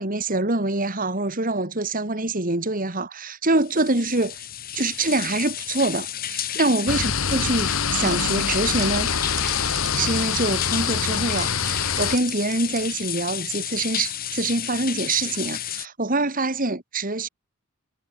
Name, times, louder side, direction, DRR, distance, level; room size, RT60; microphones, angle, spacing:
voice 1, 0.0-4.4 4.7-9.1 9.9-17.3, right 2 dB, 40° right, 2.4 m, -25 dB
sound 1, 3.6-15.9, left 11 dB, 40° left, 1.7 m, -32 dB
sound 2, 6.9-12.2, left 6 dB, 70° left, 1.9 m, -25 dB
sound 3, 8.0-11.5 11.8-13.1, right 5 dB, 15° right, 3.1 m, -41 dB
head